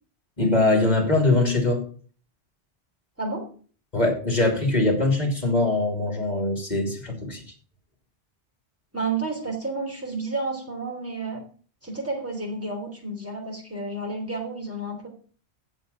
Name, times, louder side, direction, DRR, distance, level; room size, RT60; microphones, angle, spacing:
voice 1, 0.4-1.9 3.9-7.4, left 2 dB, 40° left, 1 dB, 3.1 m, -22 dB
voice 2, 8.9-11.4 11.8-15.1, right 3 dB, 15° right, -1 dB, 3.3 m, -31 dB
8.1 x 7.4 x 6.9 m, 0.42 s
omnidirectional pair, 1.1 m